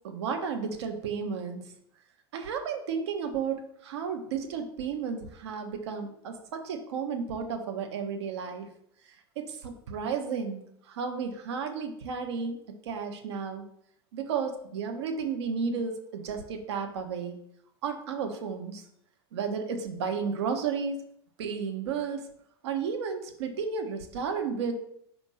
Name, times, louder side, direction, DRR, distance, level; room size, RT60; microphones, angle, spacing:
voice 1, 0.0-1.6 2.3-8.7 9.4-10.6 10.9-12.6 12.9-13.6 14.1-17.3 17.8-18.8 19.3-21.0 21.4-22.2 22.6-24.7, right 6 dB, 80° right, 5 dB, 1.0 m, -33 dB
5.2 x 3.5 x 5.5 m, 0.70 s
hypercardioid pair, 100°, 14 cm